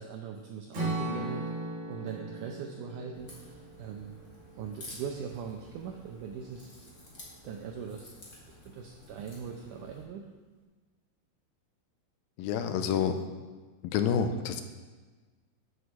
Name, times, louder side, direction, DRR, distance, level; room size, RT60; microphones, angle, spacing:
voice 1, 0.0-1.5 1.9-3.4 3.8-4.2 4.6-7.0 7.4-8.1 8.5-10.3, right 6 dB, 90° right, 2 dB, 1.8 m, -40 dB
Strum, 0.7-4.9, right 2 dB, 35° right, 2.6 m, -37 dB
Crack, 3.1-10.0, left 1 dB, 30° left, 1.9 m, -51 dB
voice 2, 12.4-13.2 13.9-14.6, left 7 dB, 80° left, 8 dB, 2.3 m, -28 dB
8.2 x 7.9 x 6.2 m, 1.3 s
omnidirectional pair, 4.6 m